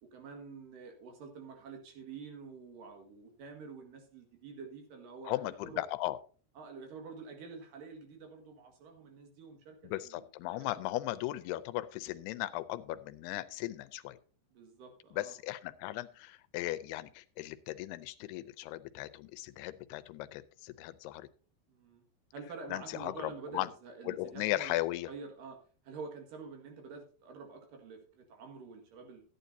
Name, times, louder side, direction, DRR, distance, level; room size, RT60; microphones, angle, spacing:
voice 1, 0.0-5.8 6.6-9.8 10.0-10.2 10.5-10.7 14.5-15.3 21.7-22.0 22.3-24.7 25.1-25.6 25.8-29.2, right 4 dB, 60° right, 3 dB, 3.3 m, -48 dB
voice 2, 5.3-6.2 9.8-14.2 15.1-21.3 22.7-23.7 24.1-25.1, left 16 dB, 85° left, 13 dB, 2.6 m, -37 dB
14.5 x 9.3 x 2.7 m, 0.40 s
omnidirectional pair, 4.6 m